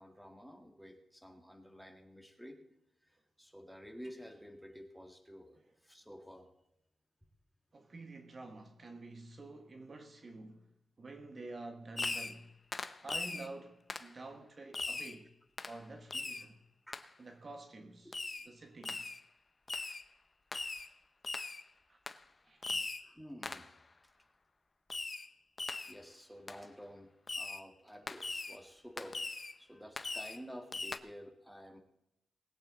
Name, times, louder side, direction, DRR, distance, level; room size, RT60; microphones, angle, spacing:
voice 1, 0.0-2.6 3.0-6.5 16.9-17.2 20.8-20.9 23.0-23.7 24.0-24.1 25.9-29.3 29.6-31.8, equal, ahead, 2.0 m, -51 dB
voice 2, 7.7-10.7 11.0-12.5 13.0-15.3 15.7-16.6 17.2-18.2 18.4-19.1 21.9-22.0 22.4-22.9, right 2 dB, 40° right, 1.3 m, -49 dB
Fireworks, 12.0-12.4 12.7-13.5 13.9-14.1 14.7-15.2 15.6-15.8 16.1-16.5 16.9-17.0 18.1-18.5 18.8-19.2 19.7-20.0 20.5-20.9 21.2-21.6 22.1-22.2 22.6-23.1 23.4-23.7 24.9-25.3 25.6-26.0 26.5-26.6 27.3-27.6 28.1-28.6 29.0-29.5 30.0-30.4 30.7-31.0, left 3 dB, 30° left, 0.8 m, -40 dB
20.0 x 8.9 x 4.0 m
cardioid pair, 100°, 0 cm